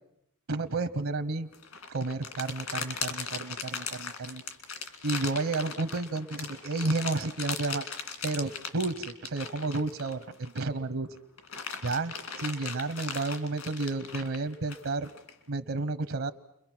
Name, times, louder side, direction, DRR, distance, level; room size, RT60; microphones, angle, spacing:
voice 1, 0.5-1.5 1.9-4.4 5.0-7.9 8.2-11.1 11.8-15.1 15.5-16.3, right 3 dB, 70° right, 11 dB, 0.9 m, -31 dB
sound 1, 1.5-10.8 11.2-15.3, left 6 dB, 70° left, 2.3 m, -38 dB
30.0 x 22.5 x 6.1 m, 0.77 s
head